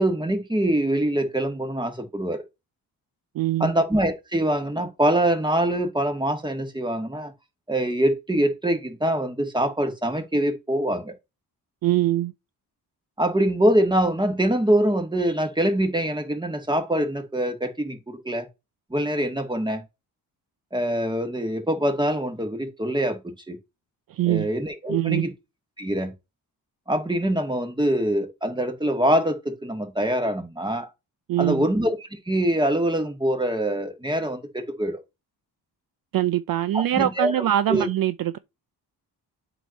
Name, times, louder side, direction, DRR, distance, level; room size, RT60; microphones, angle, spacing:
voice 1, 0.0-2.4 3.6-7.3 7.7-11.1 13.2-18.5 18.9-19.8 20.7-23.6 24.2-25.3 25.8-26.1 26.9-30.9 31.4-32.0 32.3-35.0 36.7-37.3 37.7-37.9, right 1 dB, 10° right, 1.8 m, -24 dB
voice 2, 3.3-3.7 11.8-12.3 24.1-24.5 24.9-25.3 31.3-31.7 36.1-38.4, right 13 dB, 55° right, 0.5 m, -23 dB
8.1 x 3.0 x 5.2 m
cardioid pair, 80°, 41 cm